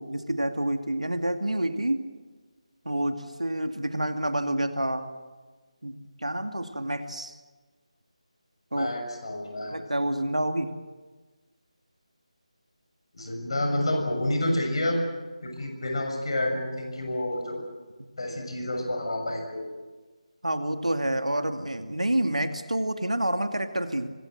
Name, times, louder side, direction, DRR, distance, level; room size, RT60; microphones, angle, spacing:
voice 1, 0.0-2.0 2.8-5.1 5.8-7.3 8.7-8.9 9.7-10.7 20.4-24.1, right 1 dB, 75° right, 7 dB, 2.3 m, -28 dB
voice 2, 8.7-9.8 13.1-15.0 15.4-17.6 18.2-19.7, left 1 dB, 50° left, 2 dB, 7.0 m, -29 dB
24.5 x 21.0 x 7.9 m, 1.3 s
figure-of-eight pair, 155°, 4 cm